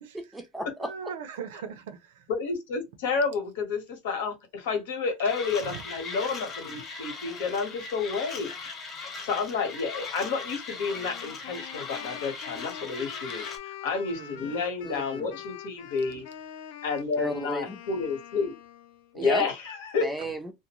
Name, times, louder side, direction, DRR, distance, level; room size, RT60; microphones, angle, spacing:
voice 1, 0.1-1.1 14.5-14.6 14.8-15.3 17.2-17.8 19.1-19.5 20.0-20.5, right 1 dB, 5° right, 0.4 m, -34 dB
voice 2, 0.8-2.2 5.6-5.8 14.1-14.6, right 7 dB, 90° right, 0.6 m, -40 dB
voice 3, 2.3-8.5 9.2-16.2 16.8-18.5 19.1-20.1, left 5 dB, 90° left, 1.1 m, -30 dB
Mechanisms, 5.2-13.6, left 4 dB, 30° left, 0.9 m, -39 dB
Wind instrument woodwind instrument, 11.0-19.1, left 10 dB, 70° left, 0.5 m, -44 dB
2.5 x 2.1 x 2.9 m
supercardioid pair, 155°, 0 cm